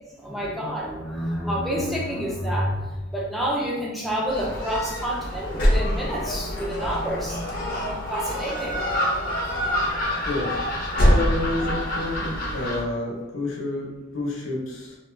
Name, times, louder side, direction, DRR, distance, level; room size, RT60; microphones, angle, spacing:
voice 1, 0.2-8.9, equal, ahead, -4 dB, 0.4 m, -29 dB
Gull seagull, 4.3-12.8, equal, 45° left, 0.6 m, -25 dB
voice 2, 10.3-10.6 10.9-13.9 14.1-15.0, left 2 dB, 85° left, -2 dB, 0.8 m, -29 dB
2.6 x 2.2 x 3.3 m, 1.1 s
head